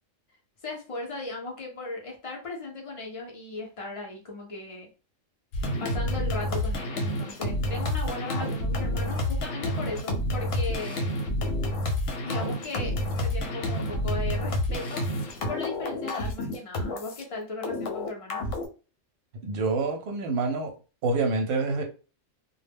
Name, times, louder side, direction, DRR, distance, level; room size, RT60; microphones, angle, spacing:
voice 1, 0.6-4.9 5.8-11.1 12.2-15.0 15.5-18.5, left 2 dB, 40° left, 0.5 m, -37 dB
sound 1, 5.5-17.2 17.6-18.7, left 1 dB, 85° left, 1.0 m, -29 dB
voice 2, 19.4-20.7 21.0-21.8, right 3 dB, 60° right, 0.7 m, -27 dB
2.1 x 2.0 x 3.3 m
omnidirectional pair, 1.3 m